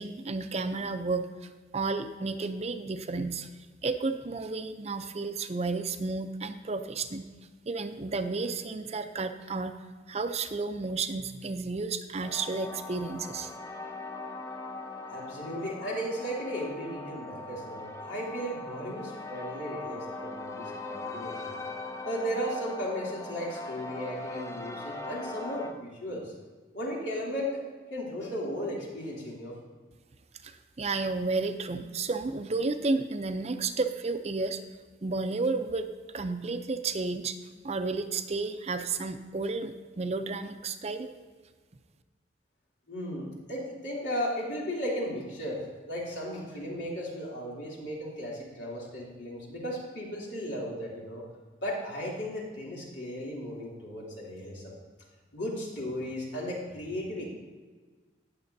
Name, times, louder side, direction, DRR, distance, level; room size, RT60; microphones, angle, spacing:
voice 1, 0.0-3.5 3.8-7.3 7.7-9.7 10.1-13.5 30.4-34.6 35.0-37.4 37.6-41.1, right 3 dB, 35° right, 9 dB, 0.5 m, -32 dB
sound 1, 12.2-25.7, left 2 dB, 15° left, 0.5 m, -40 dB
voice 2, 15.1-21.6 22.0-26.3 26.7-27.6 27.9-29.5 42.9-45.6 45.9-51.2 51.6-54.6 55.3-57.3, equal, 85° left, -4 dB, 3.0 m, -35 dB
18.5 x 6.9 x 2.7 m, 1.4 s
head